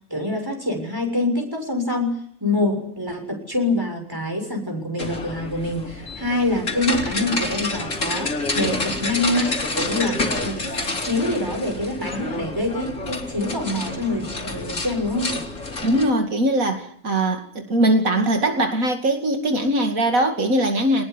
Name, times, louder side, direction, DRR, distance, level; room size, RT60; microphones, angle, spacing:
voice 1, 0.1-15.4, left 2 dB, 15° right, 3 dB, 6.8 m, -25 dB
sound 1, 5.0-16.1, left 2 dB, 65° left, 3.3 m, -28 dB
voice 2, 15.8-21.0, right 1 dB, 80° right, 5 dB, 2.8 m, -21 dB
23.0 x 20.0 x 9.9 m, 0.65 s
omnidirectional pair, 1.4 m